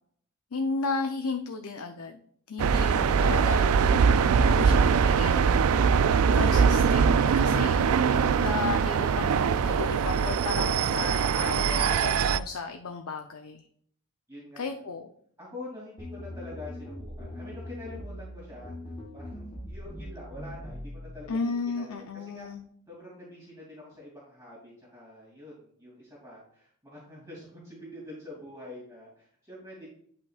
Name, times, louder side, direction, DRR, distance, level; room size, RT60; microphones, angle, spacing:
voice 1, 0.5-2.2 2.5-4.0 4.5-5.9 6.3-7.8 8.4-13.7 14.6-15.1 21.3-22.7, left 4 dB, 85° left, 5 dB, 0.6 m, -34 dB
sound 1, 2.6-12.4, right 6 dB, 85° right, 0.4 m, -22 dB
voice 2, 14.3-14.7 15.4-21.4 21.7-22.5 22.9-29.9, left 2 dB, 15° right, -6 dB, 2.6 m, -46 dB
sound 2, 16.0-21.3, left 1 dB, 25° left, 1.6 m, -41 dB
10.5 x 5.7 x 2.4 m, 0.62 s
head